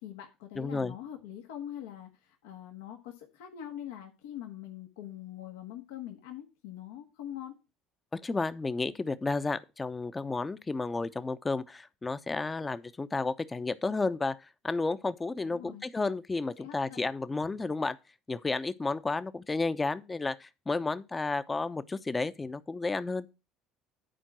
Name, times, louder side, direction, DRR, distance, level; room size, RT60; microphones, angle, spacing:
voice 1, 0.0-7.5 15.4-15.8 16.6-17.1, left 11 dB, 80° left, 1.4 m, -43 dB
voice 2, 0.6-0.9 8.1-18.0 18.3-23.3, left 3 dB, 20° left, 0.8 m, -32 dB
10.5 x 4.5 x 6.1 m
hypercardioid pair, 75°, 0 cm